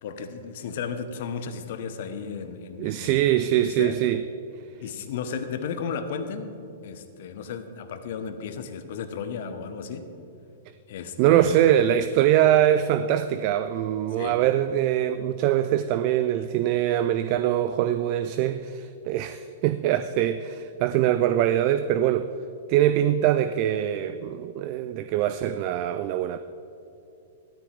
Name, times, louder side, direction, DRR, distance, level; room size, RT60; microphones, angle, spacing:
voice 1, 0.0-3.3 3.6-4.0 4.8-6.5 6.8-10.1 10.9-11.6 14.2-14.4, left 6 dB, 55° left, 9 dB, 1.2 m, -34 dB
voice 2, 2.8-4.2 11.2-22.3 22.7-26.4, right 11 dB, 45° right, 11 dB, 0.4 m, -23 dB
15.5 x 13.5 x 3.5 m, 2.8 s
figure-of-eight pair, 105°, 0 cm